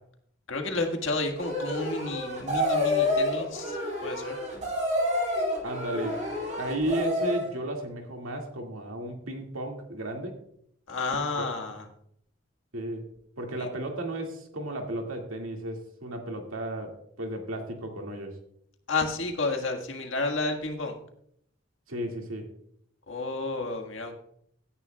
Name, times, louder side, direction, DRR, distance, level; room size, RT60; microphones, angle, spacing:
voice 1, 0.5-4.4 10.9-11.9 13.6-13.7 18.9-21.0 23.1-24.1, left 3 dB, 65° left, 3 dB, 1.7 m, -31 dB
sound 1, 1.4-7.5, left 1 dB, 35° right, 3.9 m, -28 dB
voice 2, 5.6-10.4 12.7-13.1 13.4-18.4 21.9-22.5, right 1 dB, 85° right, 2 dB, 2.2 m, -34 dB
16.5 x 9.8 x 2.3 m, 0.71 s
head